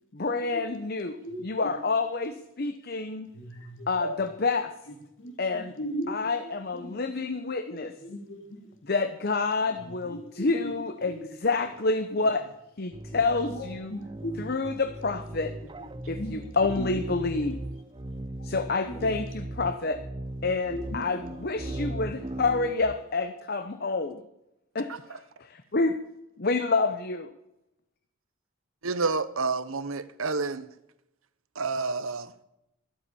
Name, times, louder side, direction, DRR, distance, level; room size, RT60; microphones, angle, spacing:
voice 1, 0.1-1.2 1.4-3.3 3.9-4.7 5.4-5.7 6.1-7.9 8.9-11.1 11.4-12.4 12.8-13.9 14.4-15.5 16.1-17.6 18.4-20.0 20.4-24.2 24.7-25.2 25.7-25.9 26.4-27.3, left 3 dB, 45° left, 0.8 m, -28 dB
voice 2, 1.2-1.8 3.3-4.2 4.9-6.3 6.6-7.3 7.7-8.7 9.6-10.7 11.0-11.3 12.1-12.2 13.1-14.6 15.6-17.0 17.4-17.6 18.1-18.2 18.9-19.1 20.7-21.2 21.6-21.9, equal, 65° left, 3.2 m, -39 dB
sound 1, 12.9-23.0, right 1 dB, 20° right, 0.6 m, -38 dB
voice 3, 28.8-30.7 31.5-32.3, right 4 dB, 75° right, 1.0 m, -29 dB
12.5 x 12.5 x 7.1 m
head